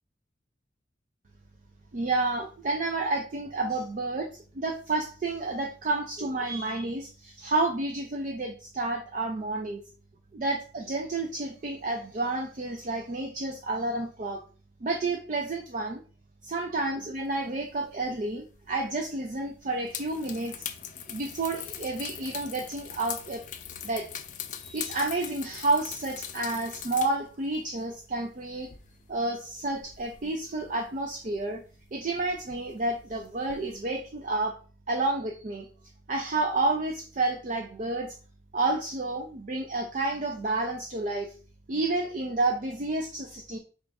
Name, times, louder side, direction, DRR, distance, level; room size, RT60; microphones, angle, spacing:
voice 1, 1.9-4.3 4.5-9.8 10.3-14.4 14.8-16.0 16.4-20.5 21.1-23.4 23.8-24.1 24.6-28.7 29.1-31.6 31.9-34.6 34.9-35.7 36.1-38.2 38.5-41.3 41.7-43.6, right 2 dB, 40° right, 2 dB, 0.4 m, -30 dB
sound 1, 18.0-18.4 18.7-18.8 19.5-27.2 27.5-30.9 31.3-31.5 31.9-33.8, left 9 dB, 40° left, 0.3 m, -41 dB
4.0 x 2.5 x 3.4 m, 0.38 s
head